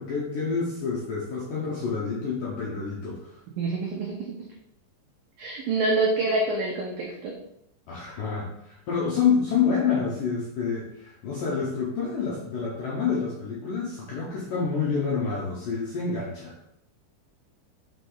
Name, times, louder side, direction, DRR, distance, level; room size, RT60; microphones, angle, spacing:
voice 1, 0.0-3.4 7.9-16.5, left 5 dB, 70° left, -6 dB, 2.0 m, -28 dB
voice 2, 3.6-4.2 5.4-7.3, right 3 dB, 90° right, -2 dB, 1.9 m, -26 dB
6.2 x 5.1 x 3.9 m, 0.75 s
omnidirectional pair, 5.5 m